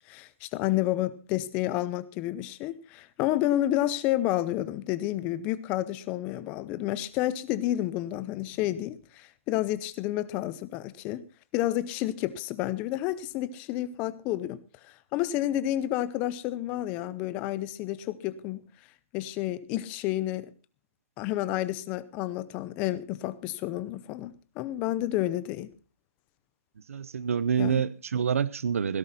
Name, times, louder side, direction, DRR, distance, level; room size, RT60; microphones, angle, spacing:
voice 1, 0.1-11.3 11.5-14.6 14.8-18.6 19.1-20.5 21.2-25.7 27.6-27.9, left 14 dB, 15° left, 0.6 m, -30 dB
voice 2, 26.9-29.0, right 7 dB, 65° right, 0.9 m, -27 dB
16.5 x 12.0 x 4.2 m
hypercardioid pair, 170°, 8 cm